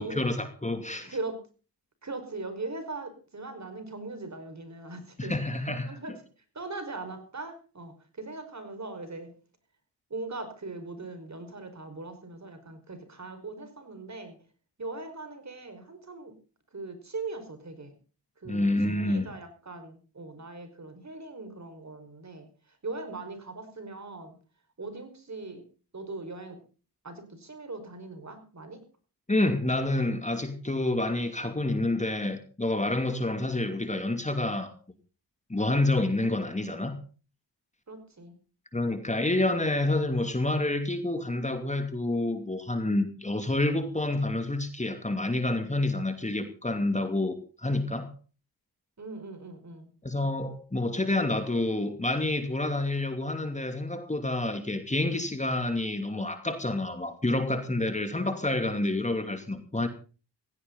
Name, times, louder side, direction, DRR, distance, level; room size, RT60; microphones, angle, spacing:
voice 1, 0.0-1.2 5.2-6.2 18.4-19.3 29.3-34.7 35.5-37.0 38.7-48.1 50.0-59.9, left 2 dB, 15° left, 2.8 m, -28 dB
voice 2, 1.0-1.4 2.0-5.3 5.8-6.1 6.5-9.3 10.1-14.4 14.8-16.3 16.7-17.9 18.4-24.3 24.8-25.6 25.9-26.6 27.0-28.8 37.9-38.3 49.0-49.9, right 3 dB, 40° right, 5.2 m, -40 dB
17.0 x 16.0 x 4.0 m
cardioid pair, 55°, 41 cm